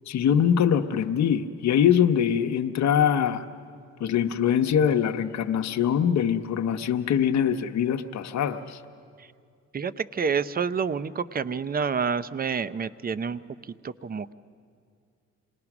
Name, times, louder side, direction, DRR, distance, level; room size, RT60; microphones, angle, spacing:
voice 1, 0.1-3.5 4.0-8.8, left 8 dB, 65° left, 7 dB, 0.8 m, -23 dB
voice 2, 9.7-14.3, right 6 dB, 30° right, 16 dB, 0.6 m, -29 dB
26.5 x 19.5 x 6.0 m, 2.3 s
cardioid pair, 90°, 30 cm